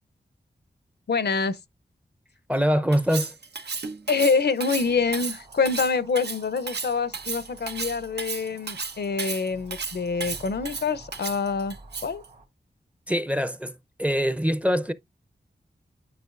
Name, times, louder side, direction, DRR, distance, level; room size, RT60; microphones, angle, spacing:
voice 1, 1.1-1.6 4.1-11.8 12.0-12.2, left 5 dB, 70° left, 0.6 m, -26 dB
voice 2, 2.5-3.3 13.1-14.9, equal, 5° right, 0.6 m, -24 dB
Cutlery silverware, 2.9-12.3, right 5 dB, 70° right, 0.9 m, -34 dB
sound 1, 4.7-12.5, right 2 dB, 50° right, 1.8 m, -50 dB
9.4 x 5.0 x 2.4 m
wide cardioid pair, 60°, 18 cm